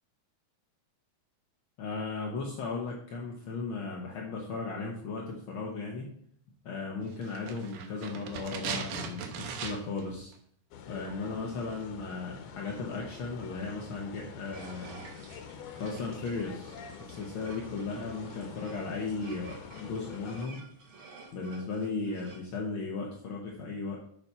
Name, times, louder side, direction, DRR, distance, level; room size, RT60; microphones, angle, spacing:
voice 1, 1.8-6.1 6.6-10.3 10.9-15.0 15.8-20.6 21.3-24.0, left 3 dB, 65° left, -1 dB, 1.3 m, -36 dB
sound 1, 7.2-10.1 10.3-10.4, right 6 dB, 75° right, 2.5 m, -38 dB
sound 2, 10.7-20.5, left 7 dB, 80° left, 2.5 m, -46 dB
sound 3, 14.5-22.5, right 3 dB, 50° right, 2.5 m, -51 dB
7.7 x 5.8 x 5.5 m, 0.64 s
omnidirectional pair, 3.7 m